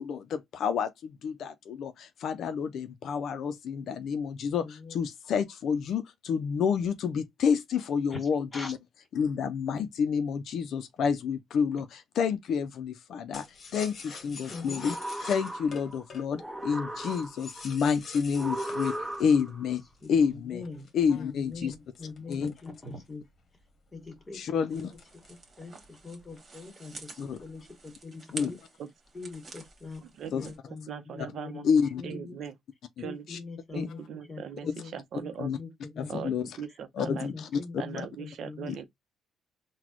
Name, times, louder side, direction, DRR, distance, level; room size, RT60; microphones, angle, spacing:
voice 1, 0.0-8.8 9.1-15.0 15.2-19.8 20.1-20.7 20.9-21.7 22.3-22.5 24.3-24.9 27.2-27.4 28.3-28.6 30.3-30.5 31.6-32.0 33.3-33.4 33.7-33.9 35.4-35.6 36.0-36.5 37.0-37.8 38.7-38.8, left 6 dB, 65° left, 0.4 m, -29 dB
voice 2, 4.6-5.0 8.1-8.2 8.5-8.7 14.5-14.8 20.0-20.9 21.1-23.2 23.9-24.9 25.6-28.6 29.1-30.0 30.3-31.7 32.0-32.4 33.0-34.0 34.3-35.0 35.6-35.7 35.9-36.3 37.0-38.8, left 3 dB, 25° left, 1.8 m, -42 dB
sound 1, 13.3-20.2 20.8-23.2 23.6-23.7 24.0-24.3 24.8-25.5 25.8-26.4, left 4 dB, 45° left, 1.0 m, -46 dB
sound 2, 14.6-16.0 16.4-17.6 18.3-19.6, right 1 dB, 10° right, 1.0 m, -37 dB
sound 3, 24.7-30.6, right 3 dB, 40° right, 1.4 m, -48 dB
voice 3, 30.0-30.5 30.9-31.7 32.0-32.6 33.0-33.3 33.7-35.5 36.1-37.3 37.8-38.8, right 8 dB, 65° right, 0.6 m, -40 dB
4.0 x 2.2 x 2.9 m
cardioid pair, 100°, 0 cm